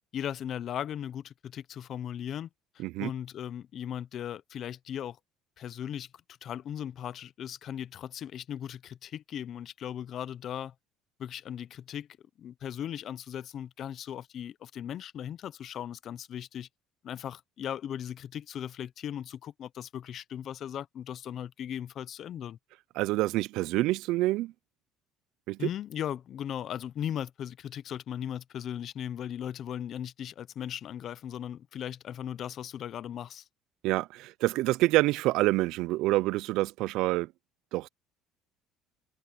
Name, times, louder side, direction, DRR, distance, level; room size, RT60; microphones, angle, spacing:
voice 1, 0.1-2.5 2.8-5.2 5.6-6.1 6.4-10.7 11.2-12.1 12.4-16.7 17.0-22.6 25.6-33.4, left 10 dB, 40° left, 0.6 m, -38 dB
voice 2, 23.0-24.5 25.5-25.7 33.8-37.3 37.7-37.9, right 18 dB, 65° right, 0.4 m, -27 dB
cardioid pair, 155°, 0 cm